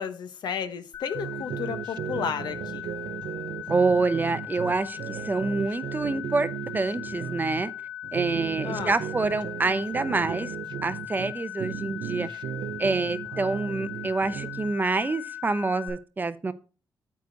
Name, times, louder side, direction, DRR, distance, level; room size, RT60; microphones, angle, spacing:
voice 1, 0.0-2.9 8.6-9.0, left 7 dB, 70° left, 0.9 m, -33 dB
sound 1, 0.9-15.9, left 13 dB, 55° left, 3.2 m, -39 dB
sound 2, 1.1-7.6 8.0-11.3 11.6-14.7, right 10 dB, 85° right, 0.4 m, -36 dB
voice 2, 3.7-7.7 8.1-10.5 10.8-12.3 12.8-16.5, right 3 dB, 25° right, 0.6 m, -27 dB
9.4 x 8.2 x 2.6 m
cardioid pair, 120°, 8 cm